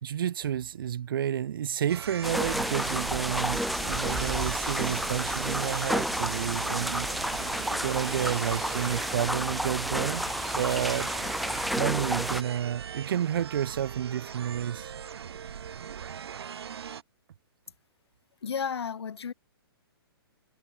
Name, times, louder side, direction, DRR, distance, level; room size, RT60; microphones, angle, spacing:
voice 1, 0.0-7.1 7.8-10.2 10.5-11.1 11.7-14.9, right 10 dB, 60° right, 0.9 m, -30 dB
sound 1, 1.9-17.0, right 8 dB, 75° right, 1.5 m, -40 dB
sound 2, 2.2-12.4, equal, ahead, 0.8 m, -31 dB
voice 2, 18.4-19.3, left 7 dB, 85° left, 6.1 m, -32 dB
hypercardioid pair, 165°, 13 cm